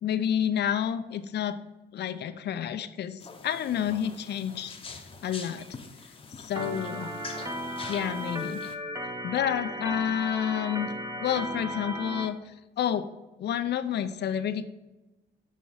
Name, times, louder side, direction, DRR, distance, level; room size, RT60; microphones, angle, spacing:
voice 1, 0.0-1.6 1.9-4.8 5.2-5.6 6.4-7.1 7.9-8.6 9.2-10.9 11.2-12.4 12.8-13.1 13.4-14.7, left 9 dB, 60° left, 11 dB, 0.5 m, -29 dB
sound 1, 3.2-8.8, left 4 dB, 25° left, 0.9 m, -45 dB
Organ, 6.6-12.3, equal, 20° right, 0.9 m, -35 dB
6.0 x 5.6 x 4.6 m, 1.0 s
cardioid pair, 90°, 20 cm